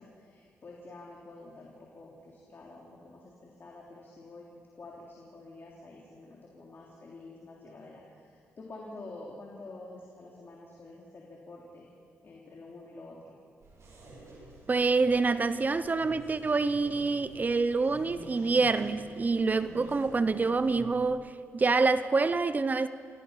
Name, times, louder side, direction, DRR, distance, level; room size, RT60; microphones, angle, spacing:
voice 1, 0.0-4.5 4.7-11.9 12.2-13.3 19.4-19.8, left 2 dB, 45° left, 3.4 m, -48 dB
sound 1, 13.6-20.9, right 2 dB, 65° right, 7.2 m, -49 dB
voice 2, 14.7-22.9, right 4 dB, 35° right, 0.8 m, -26 dB
27.5 x 17.0 x 5.8 m
cardioid pair, 80°, 5 cm